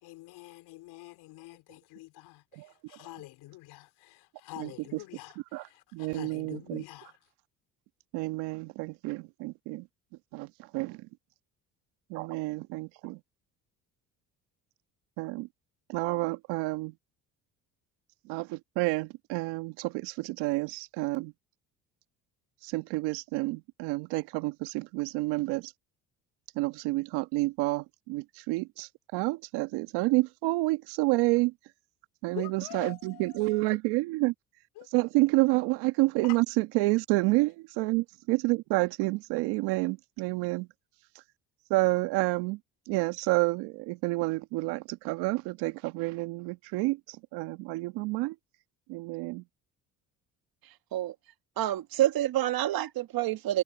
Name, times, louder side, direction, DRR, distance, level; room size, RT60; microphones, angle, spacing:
voice 1, 0.0-7.2 32.3-33.8 34.8-34.9 36.2-36.4, left 19 dB, 75° left, 4.0 m, -46 dB
voice 2, 4.6-5.0 5.5-5.7 5.9-6.8 8.1-9.9 10.3-11.1 12.1-13.2 15.2-15.5 15.9-16.9 18.2-21.3 22.6-25.7 26.5-31.5 32.2-34.3 34.9-40.7 41.7-42.6 42.9-48.3 48.9-49.4, right 22 dB, 80° right, 1.6 m, -29 dB
voice 3, 51.6-53.6, right 13 dB, 65° right, 1.8 m, -27 dB
supercardioid pair, 70°, 39 cm